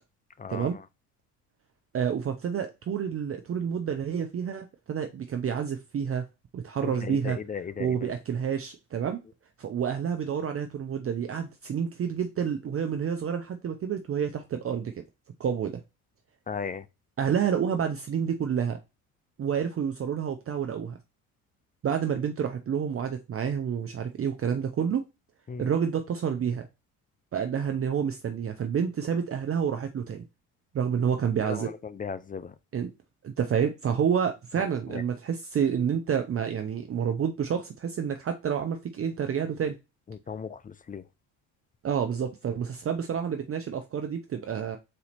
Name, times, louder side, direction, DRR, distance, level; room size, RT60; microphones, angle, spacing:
voice 1, 1.9-6.2 6.5-7.4 7.8-9.2 9.6-14.9 15.4-15.8 17.2-18.8 19.4-21.0 21.8-25.0 25.6-26.7 27.3-30.2 30.7-31.7 32.7-32.9 33.2-39.8 41.8-44.8, right 7 dB, 35° right, 0.6 m, -29 dB
voice 2, 6.8-8.0 16.5-16.8 25.5-25.6 31.4-32.5 34.9-35.0 40.3-41.0, left 6 dB, 20° left, 0.4 m, -36 dB
4.2 x 2.8 x 4.1 m
supercardioid pair, 70°, 42 cm